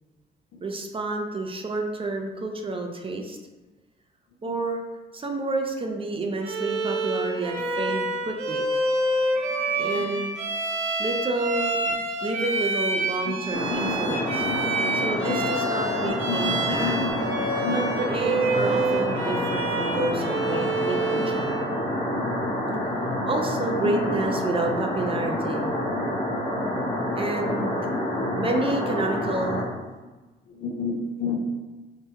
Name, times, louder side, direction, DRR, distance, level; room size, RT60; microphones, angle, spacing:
voice 1, 0.6-3.4 4.4-4.8 5.1-8.6 9.8-10.4 11.0-11.8 12.2-14.5 14.9-17.1 17.7-21.6 23.3-25.7 27.1-27.9 28.3-29.7, right 2 dB, 25° right, 3 dB, 0.4 m, -29 dB
Bowed string instrument, 6.4-21.6, right 2 dB, 85° right, 0.6 m, -28 dB
sound 1, 13.5-29.6, left 1 dB, 30° left, 0.9 m, -28 dB
voice 2, 14.3-15.0 15.3-15.4 16.3-17.1 17.6-17.9 22.1-22.3 22.9-23.3 23.8-24.0 25.9-26.1 30.6-31.4, left 5 dB, 70° left, 1 dB, 0.6 m, -31 dB
3.4 x 2.1 x 2.8 m, 1.2 s
cardioid pair, 90°, 20 cm